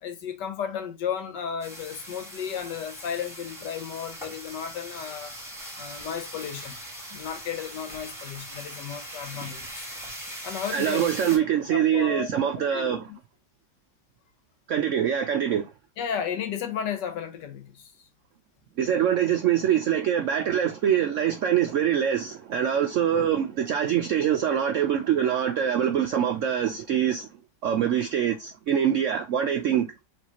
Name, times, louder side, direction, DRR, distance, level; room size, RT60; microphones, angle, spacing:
voice 1, 0.0-5.4 5.8-6.7 7.1-9.9 10.4-11.0 11.7-13.2 16.0-17.9, left 8 dB, 75° left, 1.5 m, -34 dB
sound 1, 1.6-11.4, equal, ahead, 1.1 m, -40 dB
voice 2, 10.7-13.0 14.7-15.7 18.8-27.3 27.6-29.9, right 9 dB, 80° right, 0.7 m, -24 dB
4.5 x 3.3 x 2.8 m
omnidirectional pair, 1.9 m